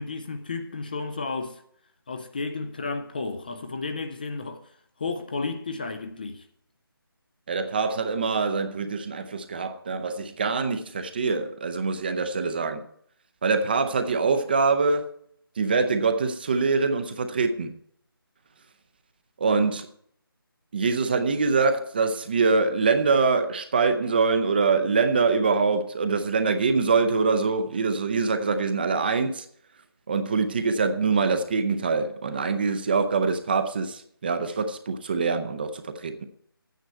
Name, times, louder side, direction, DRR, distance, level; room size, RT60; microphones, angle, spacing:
voice 1, 0.0-1.6 2.1-4.6 5.0-6.5, left 3 dB, 25° left, 0.5 m, -32 dB
voice 2, 7.5-12.8 13.4-15.1 15.6-17.8 19.4-19.9 20.7-29.5 30.1-36.2, right 4 dB, 25° right, 0.6 m, -24 dB
11.0 x 9.2 x 4.4 m
figure-of-eight pair, 160°, 12 cm